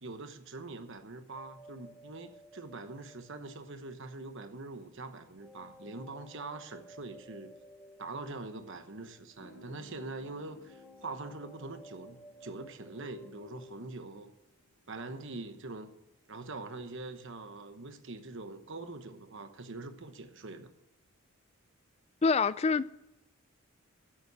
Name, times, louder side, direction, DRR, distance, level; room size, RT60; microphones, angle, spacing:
voice 1, 0.0-7.5 8.0-14.3 14.9-15.9 16.3-20.7, right 3 dB, 55° right, 1.1 m, -43 dB
sound 1, 1.3-4.0 5.4-9.3 10.7-13.7, left 1 dB, 5° left, 1.3 m, -54 dB
Guitar, 9.4-14.9, left 1 dB, 80° left, 2.7 m, -58 dB
voice 2, 22.2-22.9, left 4 dB, 30° left, 0.3 m, -26 dB
8.6 x 8.5 x 8.1 m
head